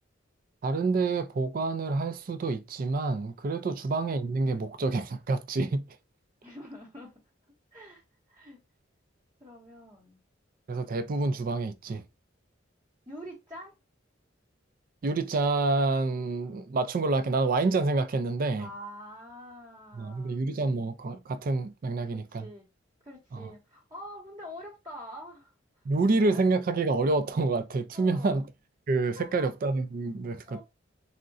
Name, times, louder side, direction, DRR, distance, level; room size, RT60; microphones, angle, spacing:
voice 1, 0.6-5.8 10.7-12.0 15.0-18.7 19.9-22.5 23.3-23.5 25.8-28.4 28.9-30.6, right 3 dB, 50° right, 0.4 m, -28 dB
voice 2, 6.4-7.2 7.7-8.6 9.4-10.2 11.9-12.0 13.1-13.8 18.6-20.4 22.0-22.7 23.0-25.5 26.2-26.4 27.9-28.5 29.2-29.5 30.5-30.6, equal, 25° right, 0.9 m, -46 dB
3.6 x 2.1 x 2.5 m
head